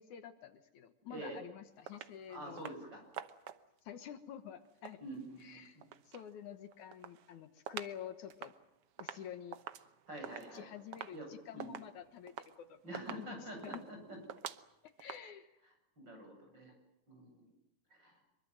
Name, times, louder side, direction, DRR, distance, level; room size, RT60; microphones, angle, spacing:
voice 1, 0.0-2.7 3.8-5.0 5.4-5.8 6.1-8.5 9.0-9.6 10.5-13.4 13.6-13.8 15.0-15.6, left 9 dB, 70° left, 9 dB, 2.7 m, -49 dB
voice 2, 1.1-1.4 2.3-3.0 5.0-5.9 10.1-10.7 11.1-11.3 11.5-11.7 12.8-14.2 16.0-16.7 17.1-17.5 17.9-18.2, right 1 dB, 30° right, 3 dB, 8.6 m, -47 dB
sound 1, 1.9-2.2 2.6-2.8 3.1-3.8 4.6-6.3 6.7-8.0 8.3-15.2, right 10 dB, 60° right, 1.6 m, -48 dB
25.0 x 23.5 x 7.7 m, 0.90 s
omnidirectional pair, 3.7 m